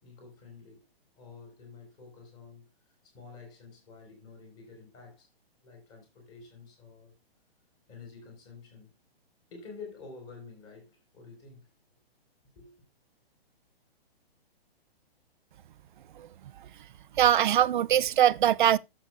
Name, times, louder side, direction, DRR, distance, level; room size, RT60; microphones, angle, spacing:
voice 1, 0.0-0.9 1.2-2.7 3.1-5.3 5.6-7.1 7.9-8.9 9.5-11.7 12.6-12.7, left 4 dB, 30° left, 4.2 m, -49 dB
voice 2, 17.2-18.8, right 11 dB, 55° right, 0.4 m, -22 dB
13.0 x 7.5 x 2.3 m
hypercardioid pair, 165°, 30 cm